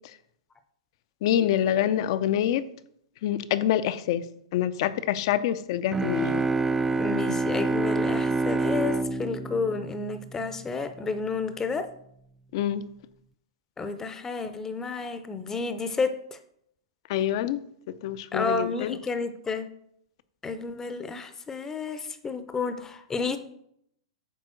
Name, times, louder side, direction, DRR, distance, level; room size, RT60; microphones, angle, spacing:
voice 1, 1.2-2.7 3.2-4.2 4.5-6.4 12.5-12.8 17.1-17.6 18.0-19.0, left 11 dB, 55° left, 0.6 m, -26 dB
sound 1, 5.9-10.6, right 3 dB, 10° right, 0.3 m, -27 dB
voice 2, 7.0-11.9 13.8-16.4 18.3-19.7 20.4-23.4, left 4 dB, 15° left, 0.7 m, -31 dB
9.2 x 3.6 x 6.4 m
hypercardioid pair, 120°, 3 cm